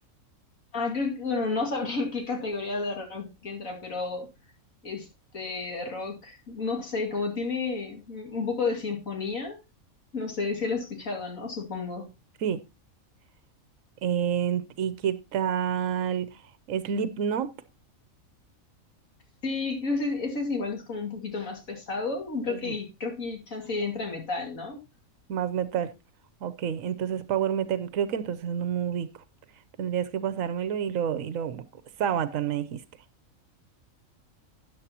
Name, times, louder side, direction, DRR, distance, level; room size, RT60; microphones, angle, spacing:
voice 1, 0.7-4.3 4.8-5.1 5.3-9.6 10.1-12.1 19.4-24.8, left 4 dB, 75° left, 2.8 m, -31 dB
voice 2, 14.0-16.3 16.7-17.5 22.5-22.7 25.3-25.9 26.4-29.1 29.8-31.6 32.0-32.8, right 8 dB, 75° right, 1.2 m, -28 dB
13.0 x 9.5 x 2.9 m
omnidirectional pair, 1.4 m